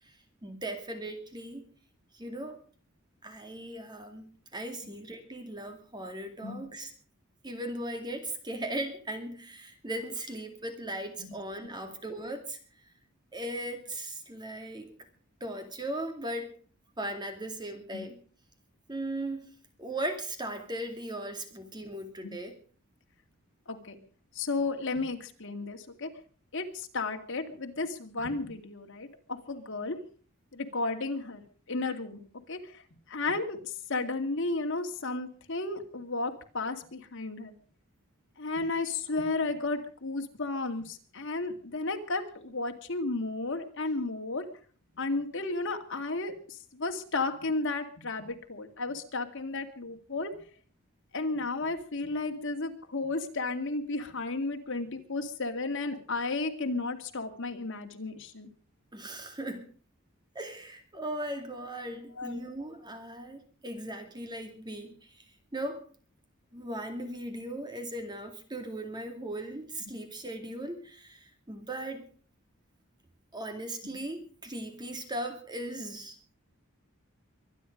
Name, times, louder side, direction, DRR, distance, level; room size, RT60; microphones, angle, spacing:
voice 1, 0.4-1.7 2.1-2.6 3.2-6.9 7.4-12.6 13.3-14.9 15.4-16.5 17.0-18.1 18.9-19.5 19.8-22.6 58.9-59.7 60.3-64.9 65.5-65.8 66.5-72.0 73.3-76.4, right 1 dB, 20° right, 6 dB, 2.3 m, -38 dB
voice 2, 23.7-24.0 24.4-26.1 26.5-30.0 30.5-31.4 31.7-32.2 32.5-32.8 33.1-37.5 38.4-44.5 44.9-50.4 51.1-58.5 62.2-62.4, left 3 dB, 60° left, 5 dB, 2.3 m, -33 dB
24.0 x 10.0 x 5.2 m, 0.42 s
head